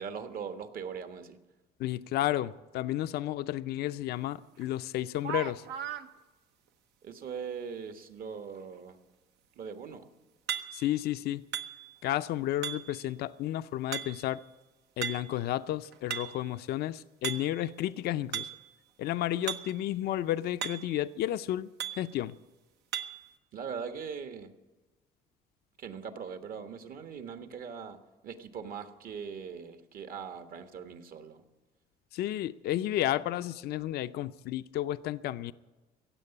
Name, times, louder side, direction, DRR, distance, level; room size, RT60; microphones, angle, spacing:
voice 1, 0.0-1.4 7.0-9.0 9.6-10.0 23.5-24.5 25.8-28.0 28.2-31.4, right 6 dB, 60° right, 1.4 m, -40 dB
voice 2, 1.8-5.6 10.7-11.4 12.0-14.4 15.0-18.5 19.0-21.7 22.0-22.4 32.1-35.5, left 13 dB, 70° left, 0.5 m, -32 dB
sound 1, 4.6-4.7 5.2-6.1 10.5-11.0 11.5-12.1 12.6-13.1 13.9-14.4 15.0-15.4 15.8-16.5 17.2-17.7 18.3-18.7 19.5-19.8 20.1-20.2 20.6-21.0 21.8-22.1 22.9-23.3, right 10 dB, 80° right, 0.9 m, -37 dB
16.0 x 8.0 x 9.7 m
cardioid pair, 110°, 17 cm